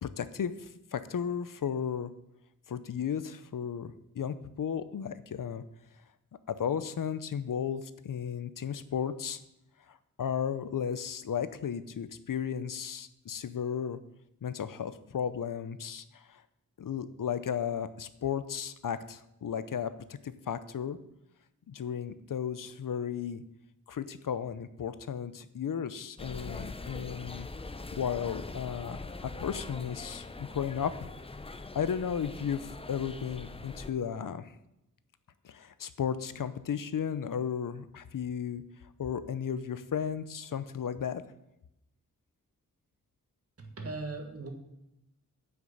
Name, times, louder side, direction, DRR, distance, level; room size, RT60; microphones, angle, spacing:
voice 1, 0.0-2.1 2.7-5.6 6.5-9.4 9.9-14.0 14.4-16.4 16.8-19.9 20.2-21.0 21.7-23.4 23.9-27.5 28.0-31.1 31.7-34.5 35.4-38.6 39.0-41.2, left 8 dB, 75° left, 13 dB, 0.7 m, -34 dB
sound 1, 26.2-33.9, left 3 dB, 20° left, 0.5 m, -42 dB
voice 2, 43.6-44.5, right 3 dB, 45° right, 4 dB, 1.5 m, -38 dB
9.4 x 6.0 x 6.6 m, 0.85 s
wide cardioid pair, 120°, 32 cm